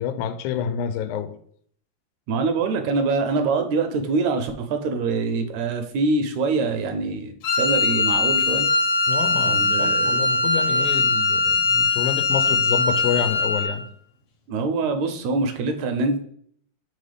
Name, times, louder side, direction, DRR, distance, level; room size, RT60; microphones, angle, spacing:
voice 1, 0.0-1.4 9.1-13.8, left 8 dB, 90° left, 2.0 m, -28 dB
voice 2, 2.3-8.7 9.4-10.3 14.5-16.2, right 3 dB, 80° right, 1.8 m, -24 dB
Wind instrument woodwind instrument, 7.4-13.8, left 3 dB, 65° left, 1.9 m, -21 dB
4.6 x 4.1 x 4.9 m
omnidirectional pair, 3.4 m